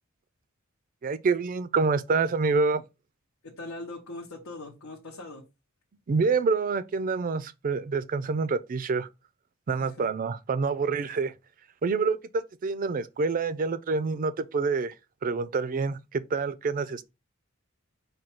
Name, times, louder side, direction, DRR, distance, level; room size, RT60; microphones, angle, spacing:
voice 1, 1.0-2.8 6.1-9.1 9.7-11.3 11.8-14.9 15.2-17.0, right 4 dB, 40° right, 0.4 m, -27 dB
voice 2, 3.4-5.4 9.7-10.1, left 2 dB, 90° left, 0.9 m, -41 dB
4.9 x 2.3 x 4.3 m
head